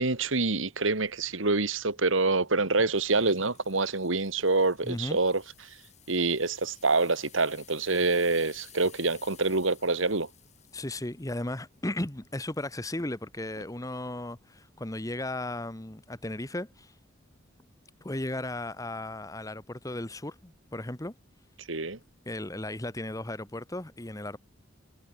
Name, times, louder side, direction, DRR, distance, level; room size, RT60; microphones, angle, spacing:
voice 1, 0.0-5.8 6.1-10.3 21.7-22.0, right 3 dB, 75° right, 2.2 m, -26 dB
sound 1, 2.8-12.7 13.2-13.4 14.0-14.1, left 10 dB, 35° left, 7.5 m, -56 dB
voice 2, 4.8-5.2 10.7-16.9 18.0-21.1 22.2-24.4, left 1 dB, 15° left, 1.1 m, -35 dB
head